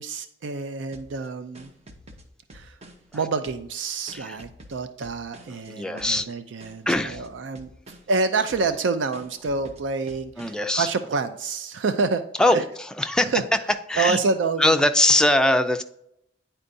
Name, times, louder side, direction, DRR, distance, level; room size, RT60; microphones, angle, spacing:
voice 1, 0.0-1.7 2.5-2.8 3.1-7.7 8.1-12.2 12.5-12.6 13.2-13.4 14.0-14.8, right 4 dB, 70° right, 10 dB, 0.4 m, -27 dB
sound 1, 0.9-3.2 3.4-5.7 6.0-6.3 6.6-8.2 8.5-8.9 9.1-10.7, equal, 35° right, 0.7 m, -48 dB
voice 2, 5.5-6.3 6.9-7.2 10.4-10.9 12.4-12.6 13.0-13.3 13.9-14.2 14.6-15.8, left 1 dB, 5° left, 6 dB, 0.3 m, -21 dB
9.7 x 4.4 x 2.6 m, 0.77 s
head